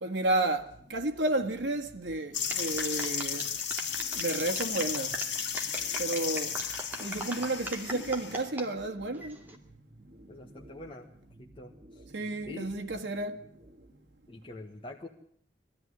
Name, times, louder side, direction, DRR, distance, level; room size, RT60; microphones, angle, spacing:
voice 1, 0.0-3.5 4.1-5.2 6.0-6.6 7.0-9.4 12.1-13.4, right 2 dB, 80° right, 1.8 m, -32 dB
sound 1, 0.6-14.3, right 1 dB, 35° right, 2.6 m, -54 dB
sound 2, 2.3-8.5, left 8 dB, 75° left, 2.1 m, -34 dB
golf clap, 2.5-8.7 9.1-9.6, right 1 dB, 10° right, 2.4 m, -39 dB
voice 2, 10.3-11.1 11.4-12.0 12.5-12.7 14.3-15.1, left 2 dB, 30° left, 1.4 m, -45 dB
21.0 x 14.0 x 9.8 m
head